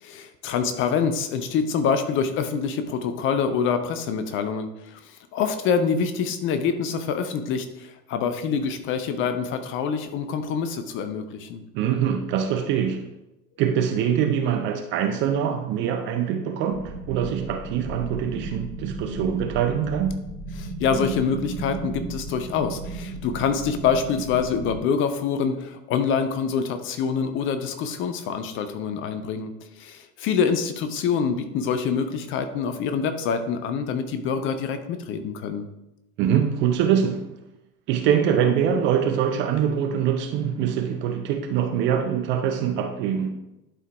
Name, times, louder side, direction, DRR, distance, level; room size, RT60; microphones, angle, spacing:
voice 1, 0.0-11.6 20.6-29.5 29.8-35.7, left 6 dB, 25° left, 0.6 m, -26 dB
voice 2, 11.7-13.1 13.6-20.2 36.2-37.3 37.9-43.4, right 8 dB, 25° right, 0.5 m, -24 dB
sound 1, 16.7-24.8, right 2 dB, 60° right, 2.7 m, -34 dB
11.5 x 4.6 x 3.4 m
figure-of-eight pair, 90°, 49 cm